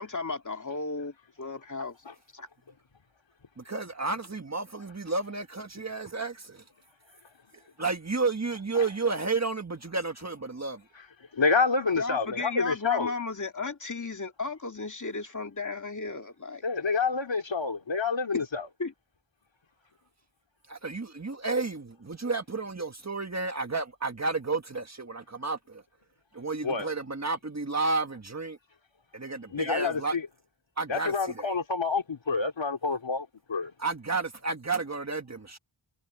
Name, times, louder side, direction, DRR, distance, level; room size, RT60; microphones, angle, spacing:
voice 1, 0.0-2.0 2.3-2.5 12.0-16.6 18.3-18.4 18.8-18.9, left 3 dB, 35° left, 2.6 m, -34 dB
voice 2, 3.6-6.6 7.8-10.8 20.7-25.8 26.3-28.6 29.1-30.2 30.8-31.5 33.8-35.6, right 3 dB, 35° right, 1.4 m, -31 dB
voice 3, 11.4-13.1 16.6-18.7 26.6-26.9 29.5-30.2 30.9-33.7, left 4 dB, 65° left, 2.7 m, -28 dB
wide cardioid pair, 90°, 49 cm